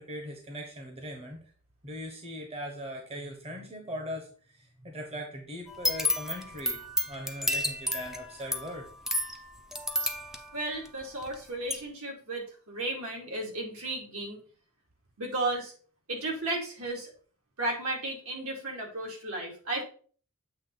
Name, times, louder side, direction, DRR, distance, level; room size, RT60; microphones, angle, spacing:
voice 1, 0.0-1.4 1.8-6.8 7.1-8.9, equal, 25° right, 2 dB, 1.2 m, -40 dB
sound 1, 5.7-11.3 11.7-11.8, left 1 dB, ahead, 0.7 m, -31 dB
voice 2, 10.5-14.4 15.2-15.7 16.1-17.1 17.6-19.8, right 2 dB, 70° right, -1 dB, 2.5 m, -34 dB
8.1 x 3.2 x 5.3 m, 0.43 s
head